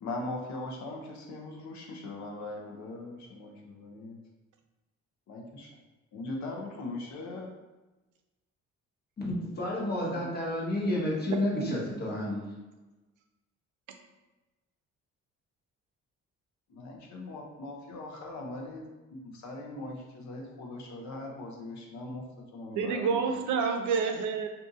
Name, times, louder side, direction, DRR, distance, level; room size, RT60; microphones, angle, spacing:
voice 1, 0.0-4.2 5.3-5.7 6.1-7.6 9.9-10.1 16.7-18.8 19.1-23.4, left 2 dB, 65° left, 0 dB, 0.8 m, -40 dB
voice 2, 9.4-12.4, left 1 dB, 35° left, -4 dB, 1.2 m, -30 dB
voice 3, 22.8-24.5, right 5 dB, 80° right, 5 dB, 0.5 m, -28 dB
2.7 x 2.6 x 3.7 m, 1.1 s
cardioid pair, 90°, 30 cm